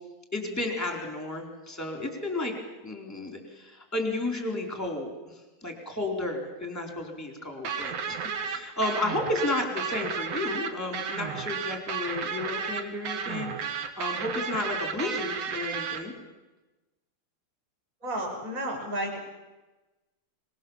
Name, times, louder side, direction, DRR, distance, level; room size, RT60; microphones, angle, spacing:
voice 1, 0.3-2.6 2.8-16.1, left 2 dB, 5° left, 2 dB, 3.5 m, -32 dB
sound 1, 7.6-16.0, right 6 dB, 70° right, 1.5 m, -33 dB
voice 2, 18.0-19.2, right 1 dB, 15° right, 1 dB, 6.1 m, -32 dB
26.5 x 22.5 x 7.4 m, 1.1 s
omnidirectional pair, 5.8 m